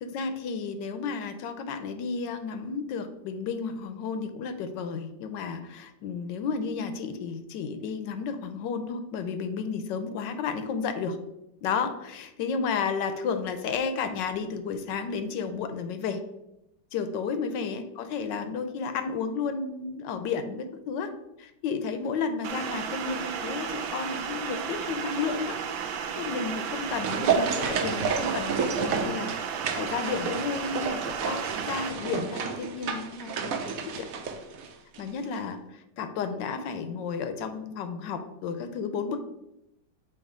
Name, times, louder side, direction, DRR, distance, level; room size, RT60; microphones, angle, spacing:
voice 1, 0.0-11.2 11.6-16.2 16.9-21.1 21.4-25.6 25.9-29.3 29.8-31.4 31.6-33.5 34.0-34.1 35.0-39.2, left 5 dB, 75° left, 9 dB, 1.2 m, -32 dB
sound 1, 22.4-31.9, right 7 dB, 85° right, 1.4 m, -34 dB
sound 2, 26.5-35.1 35.3-35.4, right 5 dB, 65° right, 0.9 m, -31 dB
7.2 x 3.1 x 4.8 m, 0.86 s
omnidirectional pair, 2.1 m